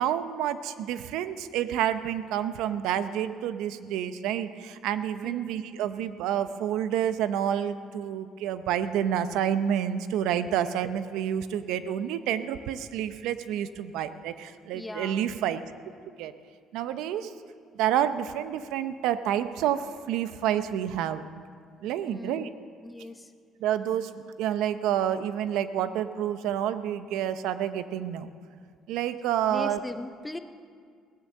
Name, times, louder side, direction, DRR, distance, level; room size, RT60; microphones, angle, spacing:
voice 1, 0.0-15.6 16.2-16.3 16.7-17.3 17.8-21.2 21.8-22.5 23.6-24.1 24.4-28.3 28.9-29.8, right 10 dB, 85° right, 12 dB, 0.7 m, -29 dB
voice 2, 14.7-15.3 22.0-22.6 22.8-23.3 29.5-30.4, left 2 dB, 10° left, 9 dB, 0.5 m, -39 dB
17.5 x 9.2 x 7.2 m, 2.1 s
cardioid pair, 155°, 0 cm